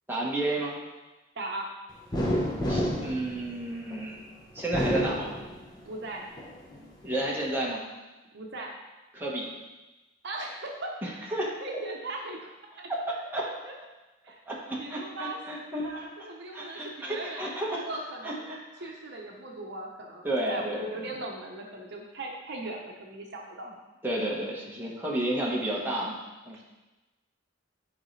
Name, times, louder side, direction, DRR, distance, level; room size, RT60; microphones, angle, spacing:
voice 1, 0.1-0.8 2.7-4.2 4.5-5.3 7.0-7.8 9.1-9.5 11.0-11.5 12.9-13.0 13.3-13.4 14.5-16.0 16.5-17.8 18.2-18.9 20.2-21.0 24.0-26.2 26.5-26.6, right 1 dB, 10° right, -5 dB, 1.4 m, -31 dB
voice 2, 1.4-1.7 5.9-6.2 8.3-8.7 10.2-10.9 11.6-12.5 12.8-12.9 13.2-13.7 14.2-14.4 14.8-18.5 18.8-23.7 26.5-26.6, right 2 dB, 60° right, 0 dB, 0.9 m, -39 dB
sound 1, 2.1-4.0 4.6-5.9 6.4-7.3, equal, 20° left, 1.0 m, -30 dB
10.5 x 4.8 x 3.3 m, 1.1 s
head